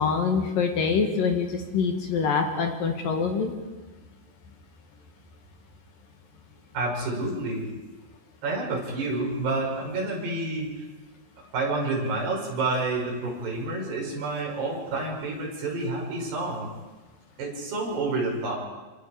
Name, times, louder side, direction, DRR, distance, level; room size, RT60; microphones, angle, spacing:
voice 1, 0.0-3.5, left 5 dB, 55° left, 3 dB, 3.0 m, -25 dB
voice 2, 6.7-7.7 8.4-10.9 11.5-16.7 17.4-18.6, right 2 dB, 55° right, -1 dB, 7.4 m, -29 dB
27.5 x 26.0 x 5.1 m, 1.2 s
omnidirectional pair, 5.7 m